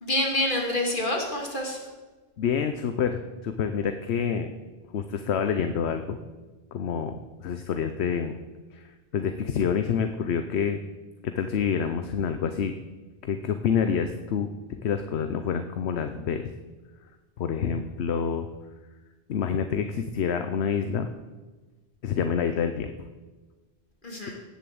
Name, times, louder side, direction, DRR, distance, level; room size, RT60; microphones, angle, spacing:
voice 1, 0.0-1.8 24.0-24.3, left 1 dB, 45° left, 0 dB, 2.8 m, -27 dB
voice 2, 2.4-4.5 4.9-6.2 6.7-8.4 8.7-8.8 9.1-10.8 11.2-12.7 13.2-14.5 14.8-16.5 17.4-18.5 19.3-21.1 22.0-23.1, left 7 dB, 70° left, 8 dB, 1.0 m, -27 dB
17.0 x 7.2 x 7.7 m, 1.3 s
omnidirectional pair, 1.2 m